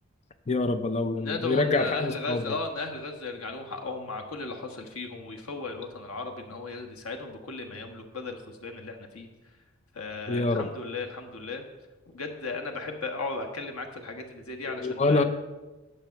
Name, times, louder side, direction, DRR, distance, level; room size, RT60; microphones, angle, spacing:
voice 1, 0.5-2.6 10.3-10.7 14.8-15.2, left 3 dB, 30° left, 9 dB, 0.4 m, -26 dB
voice 2, 1.2-9.3 9.9-11.6 12.1-15.2, left 3 dB, 80° left, 4 dB, 1.3 m, -36 dB
8.9 x 6.5 x 5.7 m, 1.1 s
head